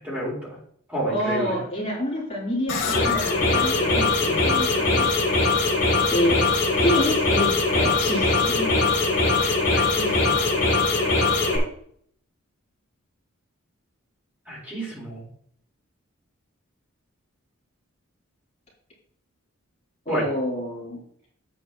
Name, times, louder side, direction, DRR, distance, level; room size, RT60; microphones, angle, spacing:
voice 1, 0.0-0.5 0.9-1.6 9.4-10.6 14.5-15.2 20.1-20.2, right 1 dB, 10° right, -6 dB, 4.3 m, -31 dB
voice 2, 1.1-5.1 6.1-6.4 6.8-8.8 20.1-21.0, left 1 dB, 30° left, -6 dB, 3.6 m, -27 dB
sound 1, 2.7-11.6, left 3 dB, 60° left, 3.3 m, -21 dB
8.9 x 8.7 x 3.0 m, 0.64 s
head